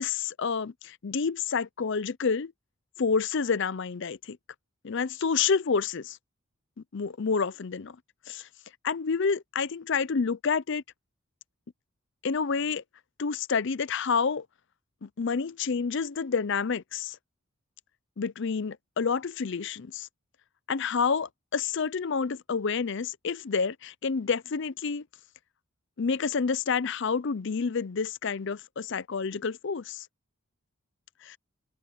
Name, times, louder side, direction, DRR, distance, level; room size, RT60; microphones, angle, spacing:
voice 1, 0.0-2.5 3.0-4.4 4.8-6.2 6.9-8.0 8.3-8.5 8.8-10.8 12.2-12.8 13.2-14.5 15.0-17.2 18.2-20.1 20.7-25.0 26.0-30.1 31.2-31.4, left 5 dB, 55° left, 0.5 m, -29 dB
open air
head